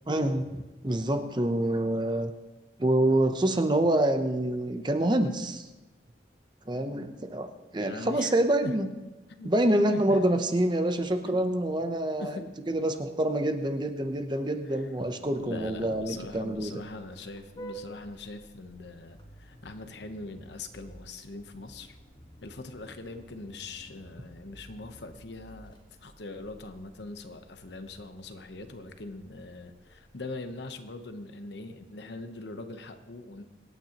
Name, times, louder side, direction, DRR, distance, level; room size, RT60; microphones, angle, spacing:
voice 1, 0.1-2.3 2.8-5.7 6.7-8.9 9.4-12.3 12.7-16.7, right 1 dB, 25° right, 7 dB, 0.7 m, -26 dB
voice 2, 7.8-8.4 8.6-8.7 9.3-9.5 9.9-10.0 11.2-11.6 12.2-12.5 15.4-22.0 22.4-33.4, left 2 dB, 70° left, 8 dB, 0.9 m, -42 dB
Vehicle horn car horn honking, 15.3-30.6, right 1 dB, 25° left, 1.4 m, -52 dB
24.5 x 9.1 x 3.0 m, 1.1 s
head